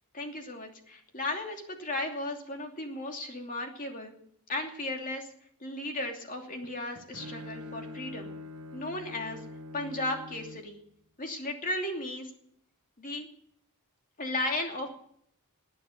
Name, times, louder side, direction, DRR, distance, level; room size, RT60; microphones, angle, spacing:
voice 1, 0.1-4.1 4.5-5.3 5.6-8.3 8.7-9.4 9.7-10.8 11.2-12.3 13.0-13.3 14.2-14.9, left 2 dB, 40° left, 3 dB, 2.8 m, -35 dB
Bowed string instrument, 6.6-10.8, left 1 dB, 65° right, 1.4 m, -44 dB
19.5 x 9.3 x 6.6 m, 0.68 s
head